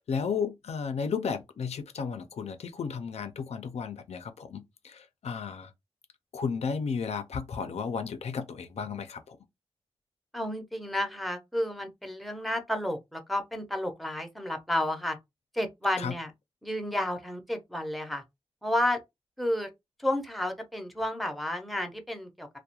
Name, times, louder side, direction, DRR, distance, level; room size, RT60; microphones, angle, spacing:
voice 1, 0.0-5.7 6.3-9.4 16.0-16.1, left 6 dB, 80° left, 0.4 m, -33 dB
voice 2, 10.3-15.2 15.5-16.3 16.6-18.2 18.6-19.0 19.4-19.7 20.0-22.5, left 1 dB, ahead, 0.5 m, -31 dB
2.3 x 2.1 x 2.8 m
wide cardioid pair, 95°, 11 cm